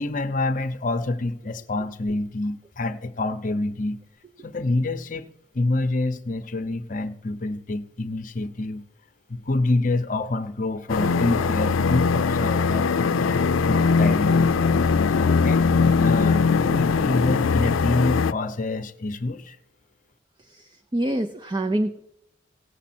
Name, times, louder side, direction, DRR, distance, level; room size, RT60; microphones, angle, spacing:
voice 1, 0.0-4.0 4.4-5.3 5.5-8.8 9.3-14.5 15.1-19.6, left 2 dB, 40° left, 0.7 m, -27 dB
sound 1, 10.9-18.3, left 5 dB, 90° left, 0.4 m, -21 dB
voice 2, 20.4-22.0, right 1 dB, 25° right, 0.5 m, -26 dB
17.0 x 7.3 x 4.3 m
head